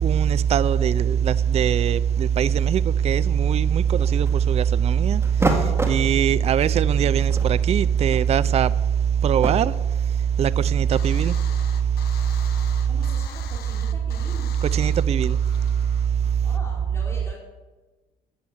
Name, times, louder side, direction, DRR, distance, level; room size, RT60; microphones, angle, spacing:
voice 1, 0.0-5.2 5.9-8.7 9.2-9.7 10.4-11.4 14.6-15.4, right 8 dB, 40° right, 0.5 m, -20 dB
sound 1, 4.0-4.6 5.2-6.0 6.8-6.9 7.2-9.5, right 2 dB, 15° right, 2.0 m, -28 dB
sound 2, 10.9-16.3, left 10 dB, 70° left, 1.2 m, -44 dB
voice 2, 12.9-14.5 16.4-17.4, left 2 dB, 15° left, 3.9 m, -40 dB
12.5 x 9.0 x 7.2 m
cardioid pair, 110°, 17 cm